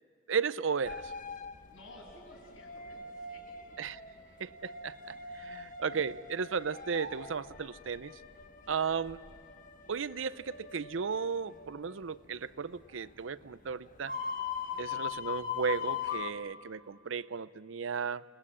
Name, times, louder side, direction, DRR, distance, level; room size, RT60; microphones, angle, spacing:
voice 1, 0.3-1.1 3.8-4.0 4.4-8.2 8.7-9.2 9.9-14.1 14.8-18.2, right 6 dB, 85° right, 16 dB, 0.6 m, -35 dB
sound 1, 0.8-16.3, left 7 dB, 45° left, 1.4 m, -42 dB
voice 2, 1.7-3.6 5.4-5.5 8.6-8.8 14.6-14.8, left 1 dB, 85° left, -1 dB, 7.9 m, -54 dB
29.0 x 19.5 x 9.9 m, 2.2 s
head